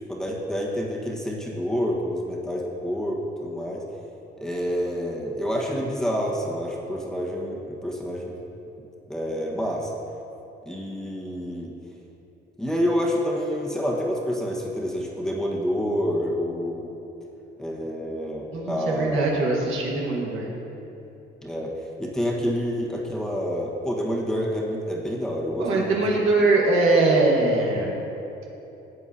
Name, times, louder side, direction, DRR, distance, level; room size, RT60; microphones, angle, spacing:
voice 1, 0.1-3.8 4.4-8.3 9.1-9.9 10.6-11.7 12.6-17.0 17.6-19.3 21.4-21.7 22.0-26.0 26.4-26.5, equal, 5° left, -3 dB, 1.4 m, -28 dB
voice 2, 18.5-20.5 25.6-28.0, right 2 dB, 85° right, -3 dB, 1.7 m, -22 dB
12.5 x 8.1 x 2.8 m, 3.0 s
cardioid pair, 90°, 20 cm